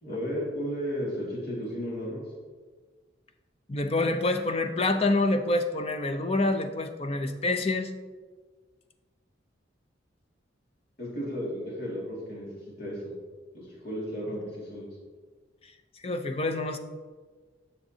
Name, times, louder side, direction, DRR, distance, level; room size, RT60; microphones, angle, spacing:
voice 1, 0.0-2.2 11.0-12.5 12.8-13.2 13.5-14.9, equal, 55° left, -5 dB, 2.2 m, -34 dB
voice 2, 3.7-7.9 16.0-16.8, left 2 dB, 30° left, 7 dB, 0.5 m, -27 dB
9.7 x 7.1 x 2.8 m, 1.4 s
head